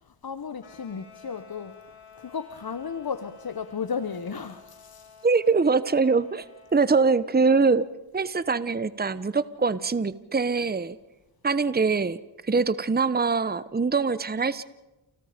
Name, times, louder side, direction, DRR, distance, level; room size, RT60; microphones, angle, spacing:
voice 1, 0.2-1.8 2.2-5.2, left 6 dB, 45° left, 1.2 m, -34 dB
sound 1, 0.6-6.8, left 6 dB, 80° left, 5.8 m, -51 dB
voice 2, 5.2-6.5 6.7-7.9 8.1-11.0 11.4-12.2 12.4-14.6, right 4 dB, 20° right, 1.0 m, -23 dB
29.5 x 18.0 x 5.2 m
cardioid pair, 45°, 49 cm